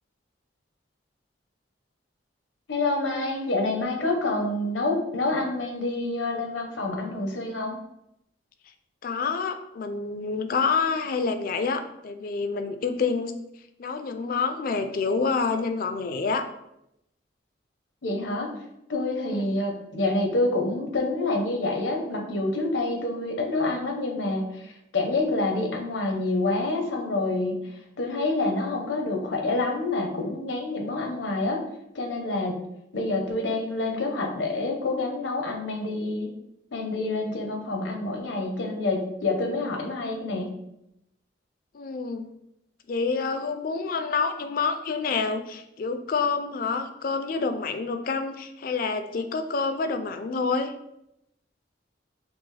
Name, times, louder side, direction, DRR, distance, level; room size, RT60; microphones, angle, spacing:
voice 1, 2.7-7.8 18.0-18.5 18.9-27.6 28.0-31.6 31.9-32.6 32.9-36.3 36.7-40.5, left 2 dB, 85° left, 2 dB, 0.8 m, -27 dB
voice 2, 9.0-13.4 13.8-16.5 19.3-19.5 41.7-42.3 42.9-50.7, left 4 dB, 50° left, 9 dB, 0.4 m, -28 dB
6.0 x 2.0 x 3.2 m, 0.82 s
head